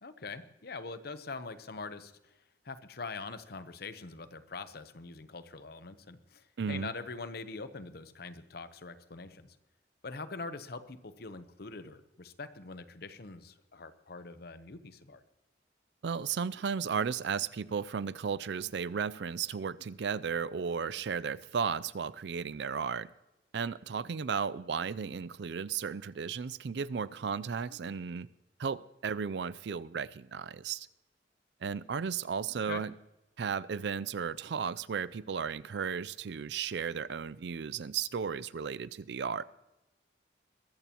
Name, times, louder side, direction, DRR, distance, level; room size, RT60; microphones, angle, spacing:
voice 1, 0.0-2.3 2.6-9.6 10.0-15.2 32.7-32.8, left 4 dB, 55° left, 0.8 m, -43 dB
voice 2, 6.6-6.9 16.0-23.1 23.5-28.3 28.6-30.9 31.6-32.9 33.4-39.4, right 6 dB, 60° right, 0.4 m, -34 dB
22.0 x 14.0 x 2.9 m
head